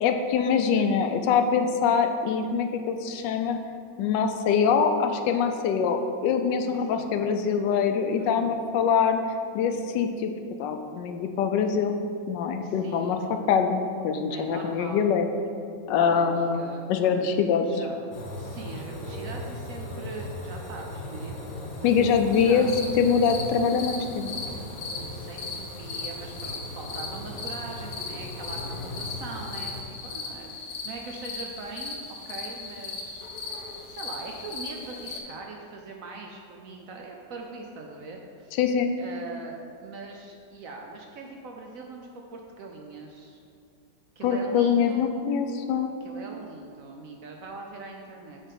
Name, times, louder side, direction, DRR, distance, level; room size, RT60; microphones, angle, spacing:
voice 1, 0.0-3.6 4.0-9.2 9.5-10.3 10.6-12.0 12.3-13.2 13.5-15.3 15.9-17.6 21.8-22.7 23.0-24.3 38.6-38.9 44.2-45.9, left 6 dB, 85° left, 6 dB, 1.2 m, -24 dB
voice 2, 6.6-7.3 8.1-8.6 12.6-13.4 14.3-15.1 15.9-16.8 17.1-18.0 18.4-21.4 21.8-22.1 22.3-22.7 25.0-32.0 32.2-33.3 33.9-38.6 39.0-43.4 44.2-45.1 46.0-48.4, right 3 dB, 65° right, 1 dB, 0.9 m, -41 dB
sound 1, 18.1-29.8, left 1 dB, 45° left, 0.7 m, -38 dB
sound 2, 22.3-35.2, left 4 dB, 65° left, 1.3 m, -38 dB
8.1 x 3.6 x 5.5 m, 2.3 s
omnidirectional pair, 1.9 m